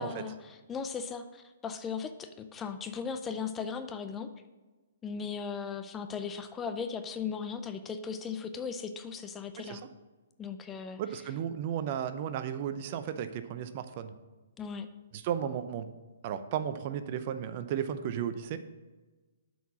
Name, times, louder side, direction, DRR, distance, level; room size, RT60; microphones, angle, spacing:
voice 1, 0.0-4.3 5.0-9.8 10.4-11.2 14.6-14.9, left 6 dB, 15° left, 8 dB, 0.5 m, -37 dB
voice 2, 11.0-14.1 15.2-15.9 16.2-18.6, right 9 dB, 45° right, 11 dB, 0.6 m, -34 dB
7.9 x 4.7 x 6.2 m, 1.2 s
hypercardioid pair, 135°, 0 cm